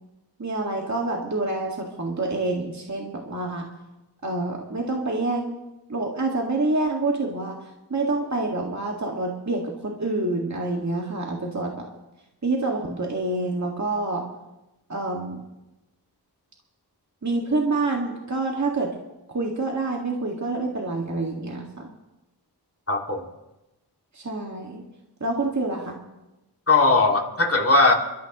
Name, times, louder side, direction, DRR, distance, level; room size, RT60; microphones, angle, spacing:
voice 1, 0.4-3.7 4.2-5.6 5.9-7.6 7.9-11.9 12.4-14.2 14.9-15.4 17.2-18.9 19.3-21.9 24.1-24.8 25.2-26.0, right 2 dB, 45° right, 0 dB, 1.9 m, -27 dB
voice 2, 22.9-23.2 26.7-27.9, left 3 dB, 35° left, 1 dB, 2.3 m, -19 dB
24.5 x 13.0 x 3.0 m, 0.97 s
wide cardioid pair, 50°, 40 cm